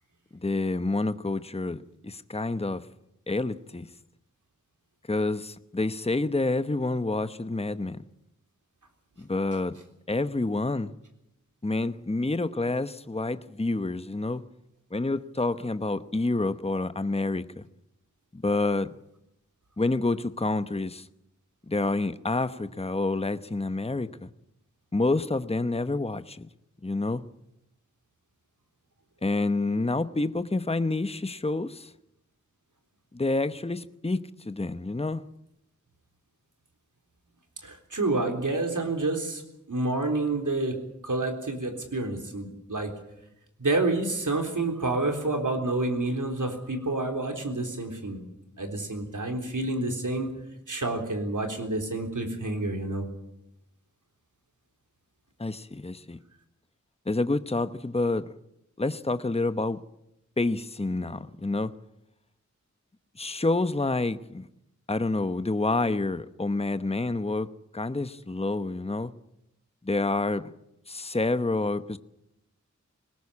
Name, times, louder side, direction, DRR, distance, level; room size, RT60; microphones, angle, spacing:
voice 1, 0.3-2.9 3.3-3.9 5.1-8.0 9.2-9.8 10.1-10.9 11.6-14.4 14.9-17.6 18.3-18.9 19.8-21.1 21.7-24.3 24.9-26.5 26.8-27.2 29.2-31.9 33.1-35.2 55.4-56.2 57.1-58.2 58.8-59.8 60.4-61.7 63.2-64.5 64.9-69.1 69.8-70.5 70.9-72.0, left 2 dB, 20° left, 0.9 m, -28 dB
voice 2, 37.6-39.4 39.7-40.8 41.0-42.9 43.6-48.3 48.6-50.4 50.7-53.0, right 2 dB, 90° right, 3.8 m, -28 dB
21.0 x 19.5 x 8.5 m
wide cardioid pair, 50°, 30 cm